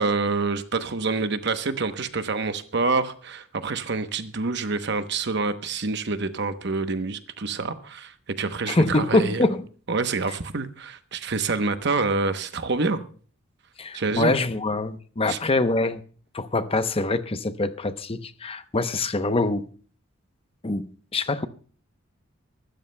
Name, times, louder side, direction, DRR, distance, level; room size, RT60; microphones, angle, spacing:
voice 1, 0.0-8.1 8.4-9.4 9.9-13.0 13.9-14.3 15.3-15.4, right 3 dB, 55° right, 0.9 m, -27 dB
voice 2, 8.7-9.7 13.8-16.0 16.3-19.7 20.6-20.9 21.1-21.5, left 2 dB, 30° left, 0.7 m, -24 dB
24.0 x 13.0 x 2.2 m
head